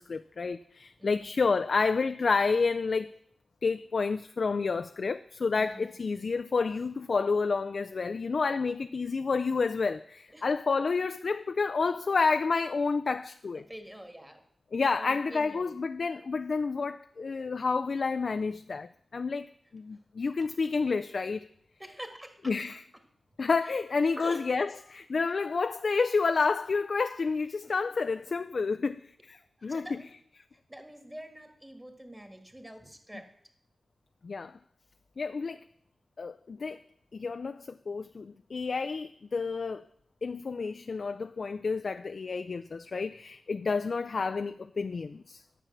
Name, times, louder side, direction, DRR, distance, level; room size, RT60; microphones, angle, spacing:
voice 1, 0.0-3.2 3.6-13.6 14.7-21.5 22.5-22.8 23.4-30.0 34.2-34.6 35.2-35.6 36.2-36.8 37.1-39.8 40.2-45.4, left 4 dB, 65° left, 0.3 m, -30 dB
voice 2, 5.5-5.9 10.3-10.5 13.5-14.4 14.9-15.8 21.8-22.5 23.6-23.7 24.2-24.4 29.7-30.1 30.7-33.3, equal, 10° right, 1.9 m, -45 dB
10.0 x 7.0 x 7.2 m
wide cardioid pair, 70°, 0 cm